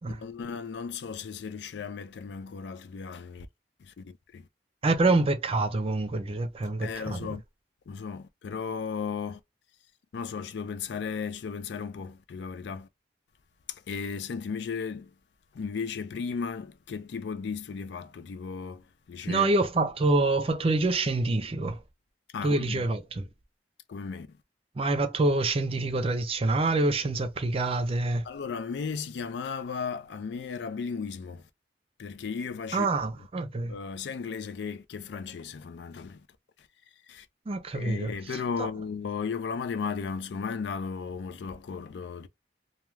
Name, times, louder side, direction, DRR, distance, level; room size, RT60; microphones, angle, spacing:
voice 1, 0.1-3.5 3.8-4.5 6.8-7.4 7.9-9.4 10.1-12.9 13.7-15.1 15.5-19.5 22.3-22.8 23.9-24.3 28.2-31.4 32.0-32.9 33.7-36.3 37.1-37.3 37.7-42.3, left 5 dB, 75° left, 0.4 m, -35 dB
voice 2, 4.8-7.4 19.3-21.8 22.4-23.2 24.8-28.2 32.7-33.7 37.5-38.1 38.6-38.7, right 2 dB, 35° right, 0.5 m, -26 dB
2.3 x 2.3 x 3.0 m
head